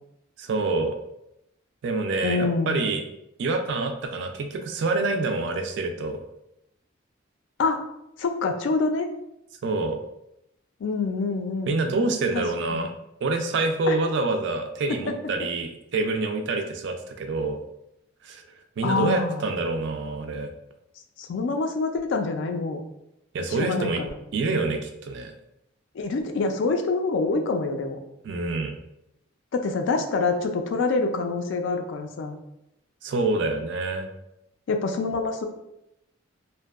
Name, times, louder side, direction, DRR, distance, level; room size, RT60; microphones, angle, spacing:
voice 1, 0.4-1.0 1.8-3.0 3.4-6.2 9.6-10.0 11.7-12.9 13.2-17.6 18.2-18.4 18.8-20.5 23.3-24.0 24.3-25.3 28.2-28.8 33.0-34.1, right 3 dB, 60° right, 6 dB, 0.3 m, -26 dB
voice 2, 2.2-2.8 7.6-7.8 8.2-9.1 10.8-11.8 12.3-12.4 12.7-12.9 13.9-14.0 14.9-15.1 18.8-19.4 21.2-22.8 23.6-24.1 25.9-28.0 29.5-32.4 34.7-35.5, left 3 dB, 65° left, 5 dB, 0.3 m, -26 dB
2.6 x 2.1 x 2.3 m, 0.84 s
head